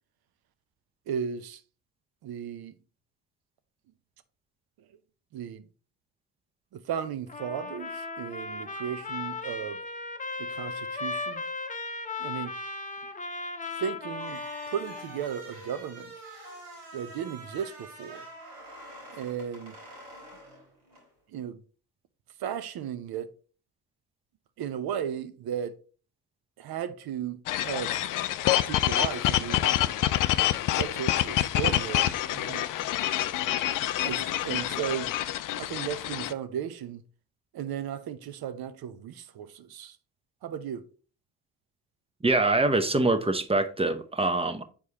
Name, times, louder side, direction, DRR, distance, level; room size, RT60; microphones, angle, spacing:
voice 1, 1.1-1.6 2.2-2.8 5.3-5.6 6.7-9.8 10.4-11.4 12.2-12.5 13.8-16.1 16.9-18.3 19.1-19.7 21.3-21.6 22.4-23.3 24.6-25.8 26.6-28.0 28.7-29.6 30.8-32.7 34.0-35.1 35.5-37.0 37.5-40.0 40.4-40.8, right 8 dB, 55° right, 0.7 m, -35 dB
Trumpet, 7.3-15.3, left 3 dB, 20° left, 0.7 m, -36 dB
sound 1, 14.1-21.1, right 1 dB, 75° right, 3.4 m, -47 dB
sound 2, 27.5-36.3, left 13 dB, 50° left, 0.5 m, -27 dB
voice 2, 42.2-44.6, right 2 dB, 15° right, 0.7 m, -24 dB
7.1 x 4.6 x 2.8 m
hypercardioid pair, 55°, 43 cm